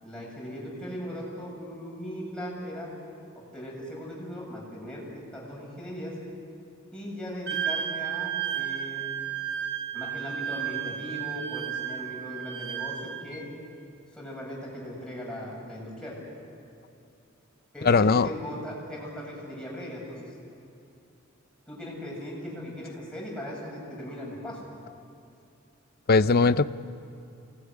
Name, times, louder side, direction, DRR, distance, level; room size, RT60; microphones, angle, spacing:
voice 1, 0.0-2.9 3.3-5.0 5.3-6.2 6.9-9.0 9.9-13.4 14.1-16.2 17.7-20.3 21.7-24.7, equal, 5° left, -4 dB, 8.0 m, -38 dB
Wind instrument woodwind instrument, 7.5-13.4, right 9 dB, 55° right, 1.9 m, -33 dB
voice 2, 17.8-18.3 26.1-26.7, left 4 dB, 45° left, 14 dB, 0.6 m, -19 dB
25.5 x 20.0 x 9.9 m, 2.6 s
head